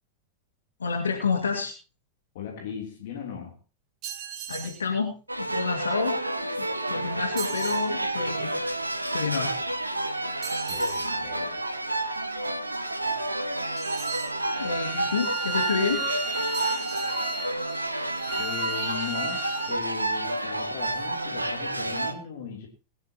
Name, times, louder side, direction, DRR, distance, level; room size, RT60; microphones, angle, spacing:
voice 1, 0.8-1.7 4.5-6.2 6.6-8.5 9.1-9.5 14.6-16.1, left 5 dB, 70° left, 3 dB, 2.1 m, -29 dB
voice 2, 2.3-3.6 10.7-11.6 18.4-22.7, left 7 dB, 55° left, 1 dB, 3.2 m, -38 dB
sound 1, 4.0-4.8 7.4-7.9 10.4-11.1 13.8-14.4 16.4-17.2, right 10 dB, 40° right, 2.5 m, -38 dB
sound 2, 5.3-22.1, right 1 dB, 85° right, 1.4 m, -30 dB
Bowed string instrument, 14.4-19.8, right 2 dB, 10° right, 0.8 m, -35 dB
21.0 x 12.0 x 3.0 m, 0.33 s
figure-of-eight pair, 90°, 0 cm